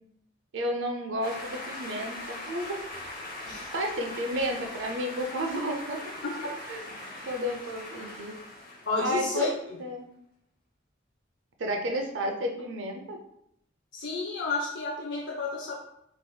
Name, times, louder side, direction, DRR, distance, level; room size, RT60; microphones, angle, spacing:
voice 1, 0.5-2.8 3.7-6.0 6.7-6.8 7.3-8.3 9.0-9.5 9.8-10.1 11.6-13.2, equal, 75° right, 3 dB, 0.5 m, -31 dB
sound 1, 1.2-9.5, left 1 dB, 50° left, 0.9 m, -41 dB
voice 2, 8.9-9.8 13.9-15.7, left 3 dB, 65° left, -1 dB, 0.5 m, -31 dB
3.3 x 2.9 x 2.2 m, 0.75 s
head